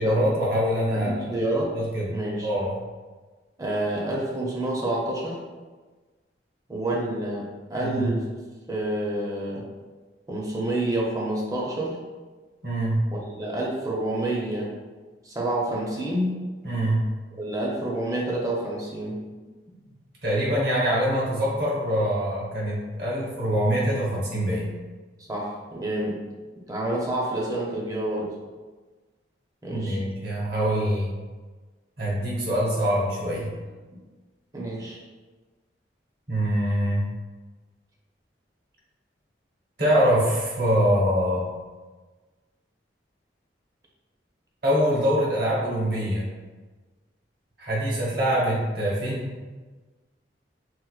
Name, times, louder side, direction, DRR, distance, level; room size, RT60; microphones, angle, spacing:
voice 1, 0.0-1.4 1.7-2.1 2.4-2.7 7.8-8.1 12.6-13.0 16.6-17.0 20.2-24.7 29.7-31.1 32.0-33.5 36.3-37.0 39.8-41.5 44.6-46.3 47.6-49.3, equal, 60° right, -5 dB, 1.0 m, -24 dB
voice 2, 0.9-1.8 2.1-2.5 3.6-5.4 6.7-8.2 8.7-9.6 10.3-12.0 13.1-14.7 15.2-16.4 17.4-19.2 25.3-26.2 26.6-28.3 29.6-30.0 33.9-34.0 34.5-35.0, right 1 dB, 20° right, -3 dB, 0.5 m, -28 dB
4.4 x 2.1 x 2.3 m, 1.3 s
head